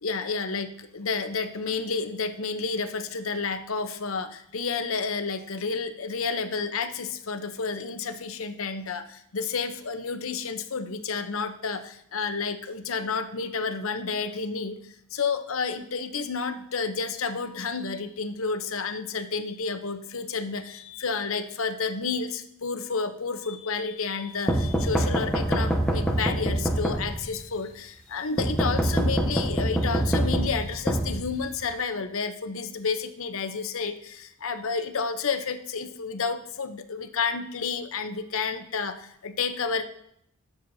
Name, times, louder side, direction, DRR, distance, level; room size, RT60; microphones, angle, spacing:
voice 1, 0.0-0.7 0.9-14.8 15.1-39.8, left 5 dB, 75° left, 9 dB, 0.8 m, -30 dB
sound 1, 24.5-27.4 28.4-31.7, right 1 dB, 5° left, 1.1 m, -25 dB
20.0 x 7.2 x 2.7 m, 0.73 s
head